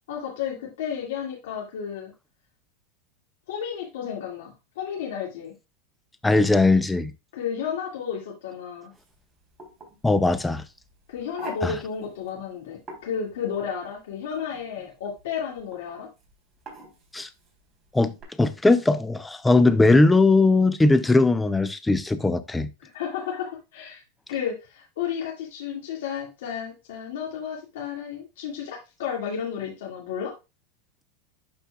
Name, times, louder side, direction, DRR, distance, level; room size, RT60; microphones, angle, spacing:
voice 1, 0.1-2.1 3.5-5.5 7.3-8.9 11.1-16.1 22.8-24.0 24.3-30.3, left 7 dB, 80° left, 2.0 m, -32 dB
voice 2, 6.2-7.1 10.0-10.6 11.6-11.7 17.1-17.3 17.9-18.1 18.4-22.7, left 2 dB, 5° left, 0.5 m, -19 dB
sound 1, 8.9-18.2, right 2 dB, 25° right, 3.3 m, -47 dB
11.5 x 4.4 x 2.3 m
supercardioid pair, 145°, 0 cm